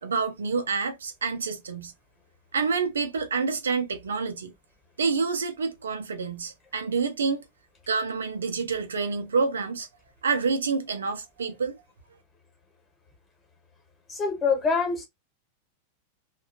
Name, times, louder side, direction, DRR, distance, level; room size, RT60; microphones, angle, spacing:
voice 1, 0.0-1.9 2.5-4.5 5.0-7.4 7.9-9.9 10.2-11.8, right 5 dB, 70° right, 0.4 m, -28 dB
voice 2, 14.1-15.1, left 5 dB, 20° left, 1.1 m, -25 dB
2.7 x 2.2 x 2.6 m
figure-of-eight pair, 90°, 0 cm